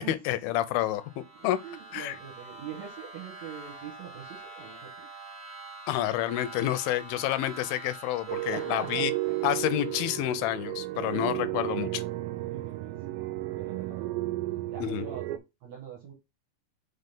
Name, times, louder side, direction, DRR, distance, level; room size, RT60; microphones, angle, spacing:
voice 1, 0.1-1.6 1.9-2.2 5.9-9.1 9.4-12.0 14.8-15.1, left 13 dB, 80° left, 2.4 m, -29 dB
sound 1, 0.7-10.4, right 2 dB, 40° right, 2.3 m, -46 dB
voice 2, 1.4-5.1 8.5-9.1 12.5-13.1 13.5-14.1 14.7-16.1, right 7 dB, 60° right, 2.1 m, -43 dB
sound 2, 8.3-15.4, right 17 dB, 80° right, 2.2 m, -33 dB
5.5 x 3.8 x 5.3 m
omnidirectional pair, 4.3 m